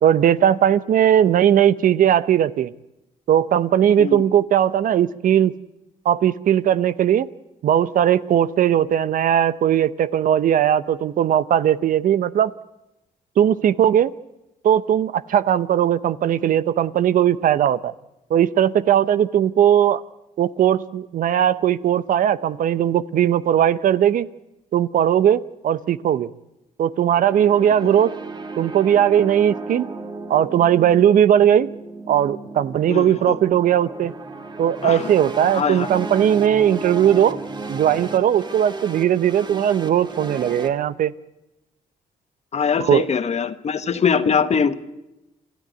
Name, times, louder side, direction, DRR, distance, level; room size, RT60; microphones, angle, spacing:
voice 1, 0.0-2.7 3.3-5.6 6.0-7.3 7.6-12.5 13.4-14.1 14.6-17.9 18.3-20.0 20.4-24.3 24.7-26.3 26.8-28.2 28.6-29.9 30.3-31.7 32.1-34.1 34.6-37.4 37.7-41.1 42.8-43.1, right 10 dB, 70° right, 16 dB, 0.8 m, -18 dB
sound 1, 27.1-40.7, right 3 dB, 30° right, 2.3 m, -34 dB
voice 2, 32.9-33.4 34.8-35.1 35.5-35.9 42.5-44.7, left 6 dB, 50° left, 11 dB, 1.5 m, -22 dB
28.0 x 13.5 x 9.2 m, 0.93 s
cardioid pair, 75°, 14 cm